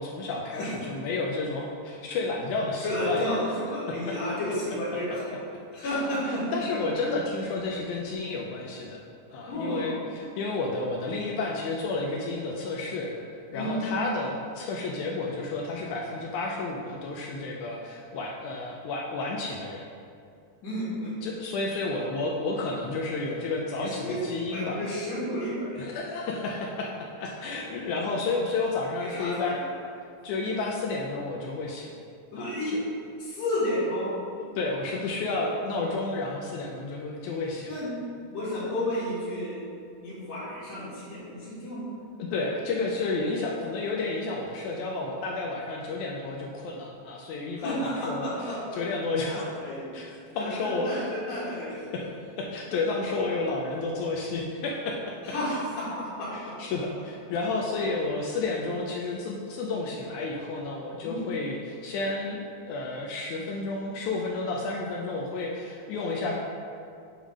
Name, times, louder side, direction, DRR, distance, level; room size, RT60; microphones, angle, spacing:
voice 1, 0.0-3.3 3.9-4.2 5.8-9.0 9.3-13.1 13.5-19.9 21.2-24.8 25.8-29.6 30.2-31.9 32.3-32.8 34.4-37.7 42.2-49.5 49.9-51.1 51.8-52.1 52.4-55.2 55.5-55.6 56.3-62.4 62.7-66.4, left 3 dB, 80° left, -1 dB, 1.9 m, -31 dB
voice 2, 2.8-5.4 5.7-6.4 9.5-9.9 13.5-13.8 20.6-21.2 23.8-24.2 24.5-25.9 27.6-27.7 29.0-29.6 32.3-32.7 33.2-34.1 37.7-38.0 38.3-39.6 40.0-41.9 47.5-48.8 49.2-49.9 50.3-51.9 53.0-53.1 55.2-56.3 61.0-61.2, left 1 dB, 60° left, -12 dB, 2.6 m, -32 dB
7.2 x 3.6 x 4.8 m, 2.4 s
omnidirectional pair, 3.8 m